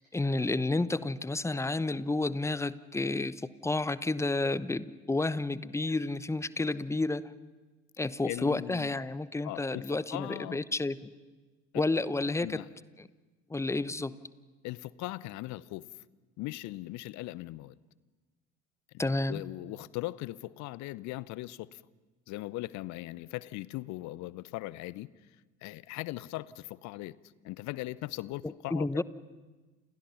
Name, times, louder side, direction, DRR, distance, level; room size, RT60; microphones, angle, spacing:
voice 1, 0.1-7.3 8.0-11.1 11.7-12.6 13.0-13.1 13.5-14.1 19.0-19.4 28.4-29.0, left 2 dB, 5° left, 17 dB, 0.9 m, -31 dB
voice 2, 8.2-9.0 9.4-10.6 12.4-12.7 14.6-15.9 16.4-17.7 18.9-21.8 22.3-25.1 25.6-27.2 27.4-29.0, left 18 dB, 50° left, 21 dB, 0.9 m, -39 dB
30.0 x 28.0 x 5.8 m, 1.3 s
figure-of-eight pair, 60°, 38 cm